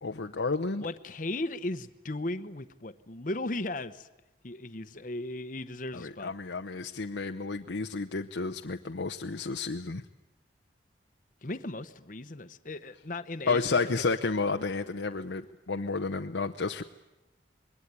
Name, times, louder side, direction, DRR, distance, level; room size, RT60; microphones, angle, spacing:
voice 1, 0.0-0.8 5.9-10.0 13.5-16.8, left 4 dB, 85° left, 5 dB, 0.8 m, -31 dB
voice 2, 0.8-4.1 4.4-6.3 11.4-13.9, left 2 dB, 45° left, 11 dB, 1.0 m, -36 dB
26.5 x 21.0 x 9.7 m, 1.0 s
head